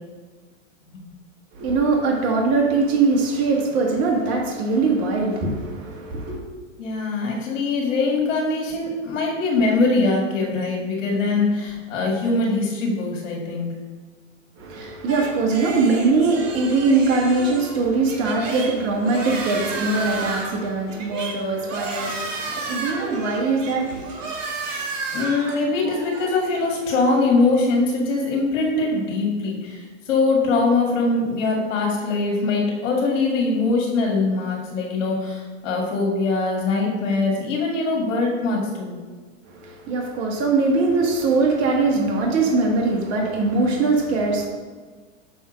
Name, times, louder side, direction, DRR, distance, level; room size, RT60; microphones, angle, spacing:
voice 1, 1.5-6.4 14.6-24.2 39.5-44.5, right 3 dB, 40° right, 0 dB, 1.5 m, -21 dB
voice 2, 6.8-13.7 25.1-38.9, left 3 dB, 65° left, -1 dB, 2.2 m, -22 dB
sound 1, 15.1-29.0, right 3 dB, 70° right, 1.9 m, -33 dB
7.0 x 3.6 x 6.2 m, 1.4 s
hypercardioid pair, 120°, 38 cm